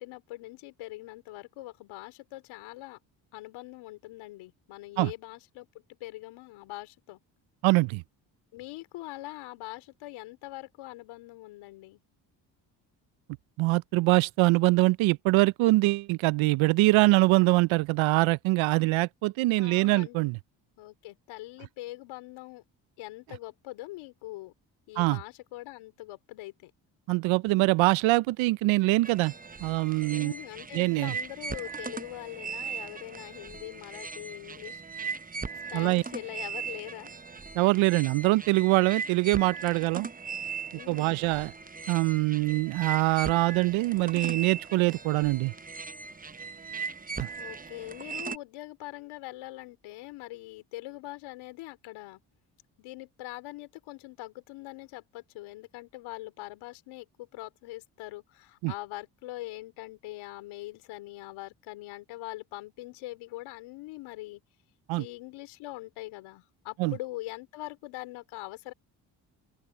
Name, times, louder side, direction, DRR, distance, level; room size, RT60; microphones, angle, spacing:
voice 1, 0.0-3.0 3.3-5.7 6.0-7.2 8.5-12.0 19.6-20.2 20.8-22.6 23.0-24.5 24.9-26.7 30.1-34.8 35.7-37.1 40.7-41.2 47.4-52.2 52.8-64.4 65.0-68.7, left 18 dB, 85° left, 4.1 m, -42 dB
voice 2, 7.6-8.0 13.6-20.4 25.0-25.2 27.1-29.3 29.6-30.3 30.7-31.1 35.7-36.0 37.6-40.1 40.9-41.5 41.9-45.5 47.2-47.3 58.6-58.7 64.9-65.0 66.8-66.9, right 21 dB, 80° right, 0.7 m, -24 dB
sound 1, 29.0-48.4, right 5 dB, 20° right, 0.9 m, -39 dB
open air
supercardioid pair, 55°, 47 cm